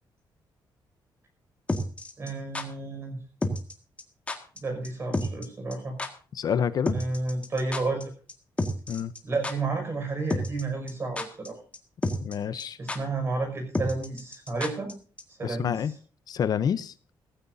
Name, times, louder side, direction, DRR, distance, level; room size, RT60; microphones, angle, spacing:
sound 1, 1.7-2.7 3.4-3.7 4.0-4.1 4.3-4.6 4.8-4.9 5.1-5.5 5.7-5.8 6.0-6.1 6.9-8.0 8.3-8.4 8.6-9.2 9.4-9.5 10.3-10.6 10.9-11.5 11.7-11.8 12.0-12.3 12.6-12.7 12.9-13.0 13.7-14.9 15.2-15.3, left 1 dB, 15° left, 1.8 m, -29 dB
voice 1, 2.2-3.2 4.6-6.0 6.9-8.1 9.2-11.6 12.8-14.9 15.4-15.8, right 3 dB, 30° right, 5 dB, 5.9 m, -31 dB
voice 2, 6.3-7.0 8.9-9.1 12.2-12.8 15.4-15.9 16.3-16.9, left 8 dB, 50° left, 14 dB, 0.7 m, -28 dB
17.0 x 15.5 x 2.7 m, 0.39 s
wide cardioid pair, 160°, 8 cm